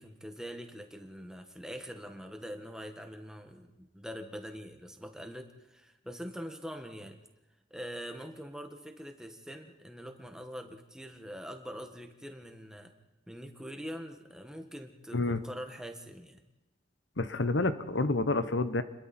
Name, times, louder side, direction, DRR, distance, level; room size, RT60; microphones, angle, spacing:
voice 1, 0.0-7.2 7.7-12.9 13.3-16.4, equal, 5° right, 5 dB, 1.6 m, -44 dB
voice 2, 17.2-18.8, left 2 dB, 70° left, 11 dB, 1.0 m, -28 dB
29.0 x 22.0 x 4.4 m, 1.1 s
head